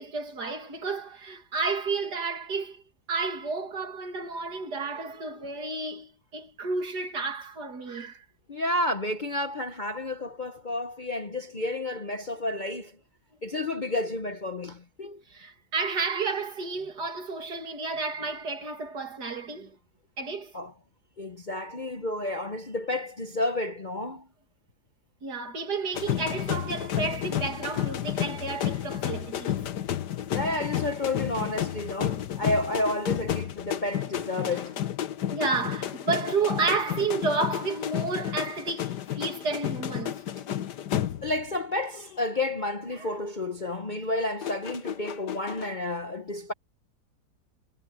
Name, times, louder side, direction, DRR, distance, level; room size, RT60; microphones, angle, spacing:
voice 1, 0.0-2.8 3.1-8.2 15.3-19.8 20.2-20.5 25.2-29.7 35.1-40.2 42.9-43.2, right 4 dB, 70° right, 3.0 m, -31 dB
voice 2, 8.5-12.9 13.4-15.2 20.5-20.7 21.2-24.3 30.3-34.8 41.2-46.5, left 2 dB, 40° left, 0.8 m, -31 dB
sound 1, 25.9-41.5 41.8-42.2 44.4-45.7, left 11 dB, 75° left, 1.7 m, -31 dB
omnidirectional pair, 1.8 m